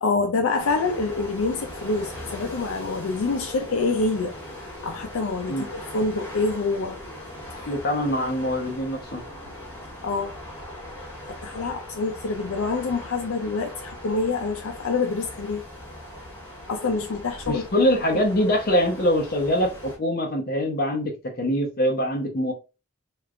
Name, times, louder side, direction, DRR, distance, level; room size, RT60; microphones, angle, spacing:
voice 1, 0.0-6.9 7.5-7.7 10.0-10.3 11.3-15.6 16.7-17.7, left 3 dB, 75° left, 0.5 m, -26 dB
sound 1, 0.6-20.0, left 1 dB, 10° left, 1.6 m, -40 dB
voice 2, 7.7-9.2 17.5-22.5, equal, 45° left, 0.9 m, -24 dB
3.2 x 2.5 x 3.1 m
head